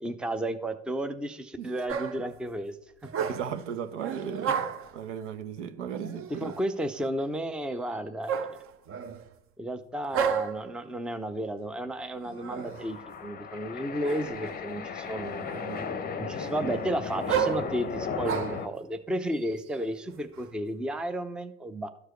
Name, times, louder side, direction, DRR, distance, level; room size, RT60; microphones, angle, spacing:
voice 1, 0.0-2.8 3.0-3.1 4.5-4.6 6.4-8.5 9.6-15.5 16.1-21.9, right 1 dB, 5° right, 0.5 m, -33 dB
sound 1, 1.9-2.3 3.0-3.6 4.0-5.0 5.9-6.7 8.3-9.3 10.1-10.7 12.2-12.9 14.0-14.6 15.1-15.9 16.4-18.7 19.4-20.5, right 7 dB, 35° right, 0.8 m, -33 dB
voice 2, 3.2-4.5 4.9-6.5, right 8 dB, 75° right, 0.9 m, -36 dB
sound 2, 12.2-18.7, left 5 dB, 25° left, 0.7 m, -36 dB
12.5 x 4.7 x 3.1 m
hypercardioid pair, 85°, 36 cm